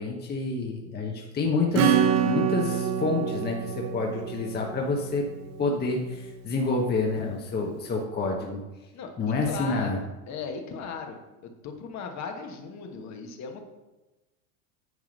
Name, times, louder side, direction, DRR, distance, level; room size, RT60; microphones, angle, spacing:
voice 1, 0.0-1.9 2.2-5.3 5.6-8.6 9.2-10.0, left 3 dB, 20° left, 0 dB, 1.2 m, -28 dB
Acoustic guitar / Strum, 1.7-6.0, right 7 dB, 35° right, 0.8 m, -27 dB
voice 2, 8.9-13.6, left 5 dB, 40° left, 4 dB, 1.4 m, -38 dB
9.5 x 3.6 x 6.6 m, 1.1 s
hypercardioid pair, 105°, 45 cm